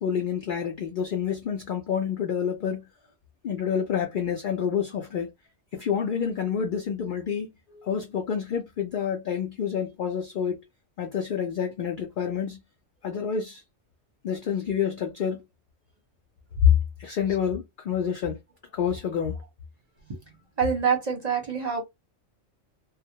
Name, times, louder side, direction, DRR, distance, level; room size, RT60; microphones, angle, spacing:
voice 1, 0.0-2.8 3.4-5.3 5.7-7.5 7.8-10.6 11.0-12.6 13.0-13.6 14.2-15.4 17.0-18.4 18.7-19.3, left 7 dB, 60° left, 0.5 m, -28 dB
voice 2, 7.7-8.1 20.1-20.2 20.6-21.8, right 6 dB, 40° right, 0.7 m, -27 dB
2.3 x 2.1 x 2.7 m
omnidirectional pair, 1.3 m